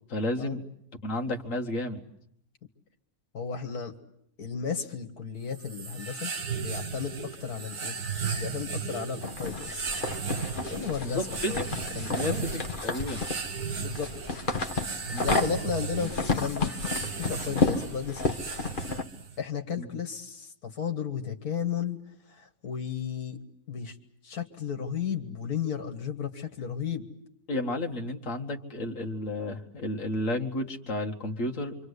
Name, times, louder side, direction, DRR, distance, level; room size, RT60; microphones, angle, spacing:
voice 1, 0.1-0.6 1.0-2.0 11.0-11.6 12.1-13.2 15.1-15.3 19.8-19.9 27.5-31.8, left 1 dB, 55° left, 2 dB, 2.1 m, -32 dB
voice 2, 3.3-3.9 4.4-8.0 8.3-9.9 10.7-12.5 13.8-14.2 15.2-16.7 17.2-18.4 19.4-22.0 22.3-24.0 24.2-27.1, left 7 dB, 80° left, 5 dB, 2.2 m, -34 dB
sound 1, 5.5-19.4, right 5 dB, 85° right, 2.3 m, -36 dB
sound 2, 9.2-19.0, left 3 dB, 35° left, 1.5 m, -31 dB
28.0 x 25.0 x 8.2 m, 0.71 s
omnidirectional pair, 1.6 m